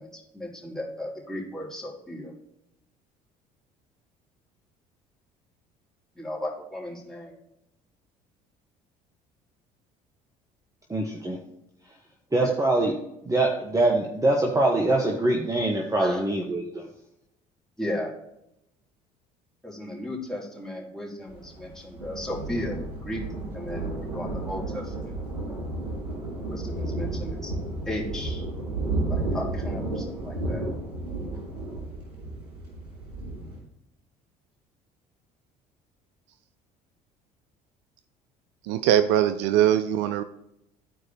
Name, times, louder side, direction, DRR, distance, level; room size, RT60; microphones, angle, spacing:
voice 1, 0.0-2.3 6.1-7.3 12.4-12.6 16.0-16.2 17.8-18.1 19.6-23.2 23.5-25.1 25.5-25.6 26.5-28.4 29.1-30.6, left 1 dB, ahead, -4 dB, 3.0 m, -35 dB
voice 2, 10.9-11.4 12.3-13.0 13.2-16.9, right 2 dB, 15° right, 0 dB, 1.2 m, -23 dB
Thunder, 21.3-33.6, right 2 dB, 85° right, 2.9 m, -32 dB
voice 3, 38.7-40.2, right 11 dB, 65° right, 11 dB, 0.5 m, -21 dB
14.0 x 4.7 x 2.9 m, 0.82 s
hypercardioid pair, 60°, 20 cm